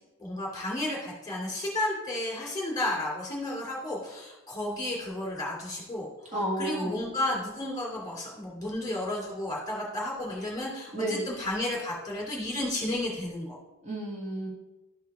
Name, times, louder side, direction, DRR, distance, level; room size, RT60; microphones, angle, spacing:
voice 1, 0.2-13.6, left 1 dB, 15° left, -4 dB, 2.6 m, -32 dB
voice 2, 6.3-7.0 10.9-11.3 13.8-14.5, right 1 dB, 30° right, -4 dB, 1.5 m, -31 dB
12.0 x 4.3 x 3.6 m, 1.1 s
head